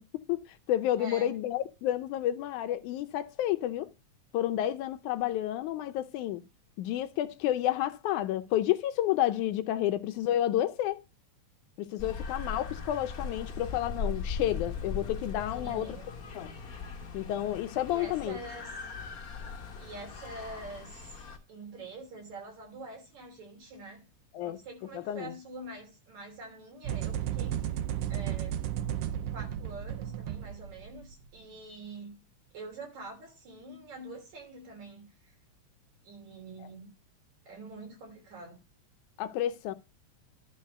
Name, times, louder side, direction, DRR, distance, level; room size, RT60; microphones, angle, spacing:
voice 1, 0.0-3.9 4.3-6.4 6.8-11.0 11.8-16.0 16.4-16.5 17.1-18.4 24.3-24.6 24.9-25.3 39.2-39.7, left 12 dB, 80° left, 2.1 m, -30 dB
voice 2, 1.0-1.3 15.5-16.1 17.9-18.7 19.8-21.1 21.5-24.0 24.4-27.6 28.1-28.6 29.3-32.1 32.5-35.3 36.0-36.9 37.4-38.6, right 2 dB, 65° right, 4.6 m, -45 dB
sound 1, 12.0-21.4, left 5 dB, 50° left, 1.1 m, -39 dB
sound 2, 26.8-31.1, right 11 dB, 90° right, 1.3 m, -34 dB
11.5 x 4.2 x 6.6 m
omnidirectional pair, 3.5 m